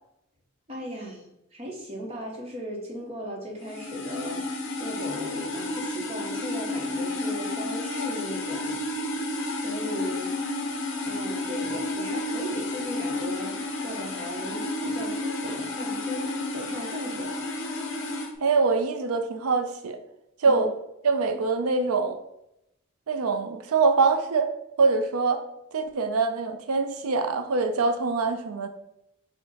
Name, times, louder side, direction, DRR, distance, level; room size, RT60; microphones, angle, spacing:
voice 1, 0.7-8.8 9.2-10.3 11.0-17.4 20.5-20.7, equal, 30° right, -1 dB, 0.9 m, -37 dB
sound 1, 3.6-18.3, left 2 dB, 55° left, 0.7 m, -31 dB
voice 2, 18.4-20.0 20.4-20.7 21.0-22.2 23.1-24.5 24.8-25.4 25.7-28.7, right 4 dB, 85° right, 7 dB, 0.5 m, -24 dB
4.8 x 2.2 x 4.0 m, 0.83 s
head